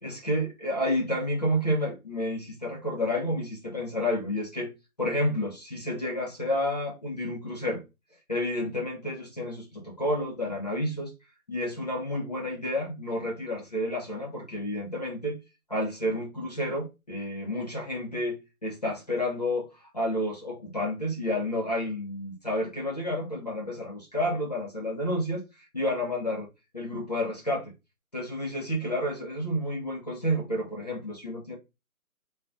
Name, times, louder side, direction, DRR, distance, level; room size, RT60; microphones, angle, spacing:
voice 1, 0.0-4.7 5.0-7.8 8.3-11.1 11.5-15.4 15.7-19.7 19.9-26.5 26.7-27.7 28.1-31.6, left 1 dB, 30° left, 0.5 m, -30 dB
3.5 x 2.3 x 2.5 m
figure-of-eight pair, 150°, 45 cm